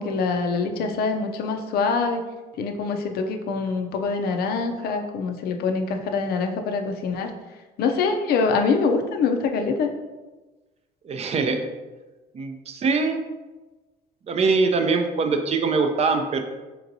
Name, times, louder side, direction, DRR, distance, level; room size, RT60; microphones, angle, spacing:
voice 1, 0.0-2.2 2.6-7.3 7.8-9.9, left 4 dB, 65° left, 5 dB, 0.5 m, -24 dB
voice 2, 11.0-11.6 12.3-13.2 14.3-16.4, right 4 dB, 40° right, 6 dB, 0.5 m, -22 dB
4.6 x 2.9 x 2.6 m, 1.2 s
cardioid pair, 110°, 17 cm